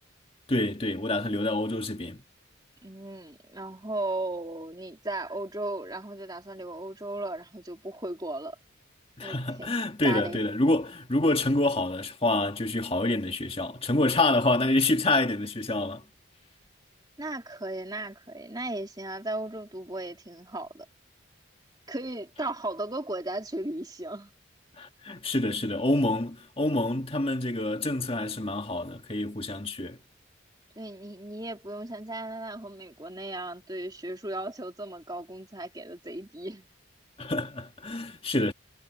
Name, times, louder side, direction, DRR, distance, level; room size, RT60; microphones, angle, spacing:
voice 1, 0.5-2.2 9.2-16.0 24.8-30.0 37.2-38.5, left 2 dB, 30° left, 1.8 m, -27 dB
voice 2, 2.8-8.6 9.2-9.7 10.0-10.4 17.2-20.9 21.9-24.3 30.8-36.7, right 2 dB, 20° right, 2.9 m, -36 dB
head